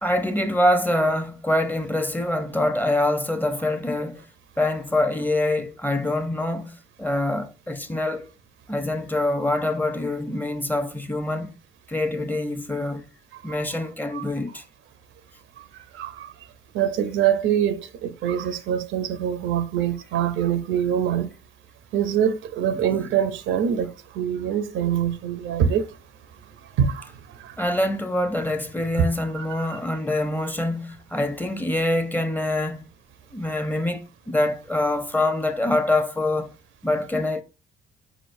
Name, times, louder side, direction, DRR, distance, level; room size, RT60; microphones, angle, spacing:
voice 1, 0.0-4.2 4.6-8.3 8.7-11.5 11.9-13.1 13.4-14.6 22.7-23.1 27.6-32.8 33.3-36.5 36.8-37.4, left 1 dB, 10° left, 0.7 m, -25 dB
voice 2, 15.9-16.3 16.7-21.3 21.9-25.9 26.8-27.1 27.4-27.6 29.0-29.1 29.3-29.8, right 9 dB, 85° right, 0.7 m, -24 dB
5.1 x 3.9 x 2.6 m
cardioid pair, 90°, 20 cm